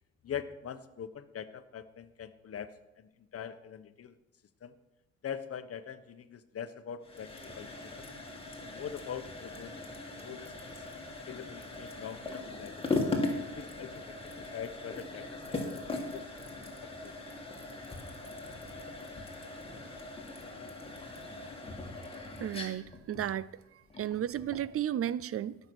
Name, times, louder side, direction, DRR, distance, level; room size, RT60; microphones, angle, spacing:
voice 1, 0.2-4.1 4.6-4.7 5.2-7.7 8.0-8.1 8.6-9.8 10.1-10.8 11.3-13.1 13.5-15.6 15.9-16.3 16.6-17.2, left 8 dB, 50° left, 1.0 m, -43 dB
sound 1, 7.0-24.7, left 2 dB, 20° left, 2.7 m, -39 dB
voice 2, 22.4-23.5 24.0-25.6, right 11 dB, 50° right, 0.5 m, -33 dB
17.0 x 6.7 x 6.2 m
cardioid pair, 90°, 30 cm